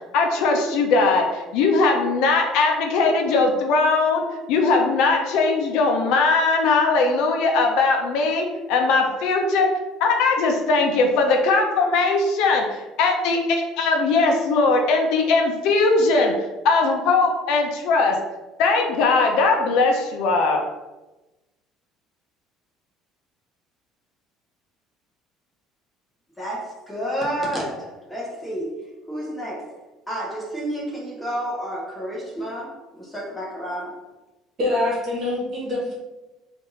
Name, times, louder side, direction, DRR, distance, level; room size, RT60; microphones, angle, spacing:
voice 1, 0.1-9.7 10.0-16.3 16.6-18.2 18.6-20.6, left 3 dB, 65° left, 2 dB, 0.5 m, -20 dB
voice 2, 26.4-29.8 30.1-34.0, equal, 5° left, -4 dB, 0.7 m, -30 dB
voice 3, 34.6-35.9, left 2 dB, 30° right, -4 dB, 1.3 m, -24 dB
3.4 x 2.5 x 3.7 m, 1.1 s
cardioid pair, 175°, 0 cm